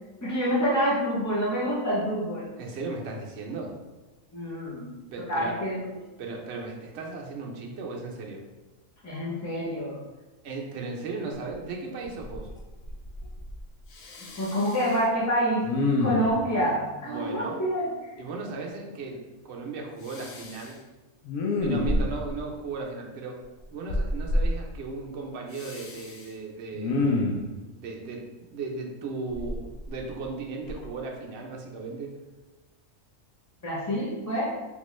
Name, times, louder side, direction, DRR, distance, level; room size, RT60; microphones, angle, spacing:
voice 1, 0.2-2.5 4.3-4.9 5.3-5.8 9.0-10.0 14.4-15.7 16.0-17.9 33.6-34.5, equal, 20° left, -8 dB, 0.4 m, -27 dB
voice 2, 2.6-3.7 5.1-5.6 6.2-8.4 10.4-12.5 17.0-17.6 18.2-20.8 21.6-23.4 23.7-27.2 27.8-32.1, right 3 dB, 65° right, 0 dB, 0.8 m, -36 dB
Respiratory sounds, 11.5-11.6 12.0-12.6 12.8-13.6 13.9-15.0 15.6-16.5 20.1-20.7 21.2-22.3 23.9-24.5 25.5-26.2 26.7-27.5 29.3-30.3 30.7-30.9, left 2 dB, 85° left, 1.0 m, -28 dB
3.6 x 2.4 x 3.0 m, 1.1 s
omnidirectional pair, 1.4 m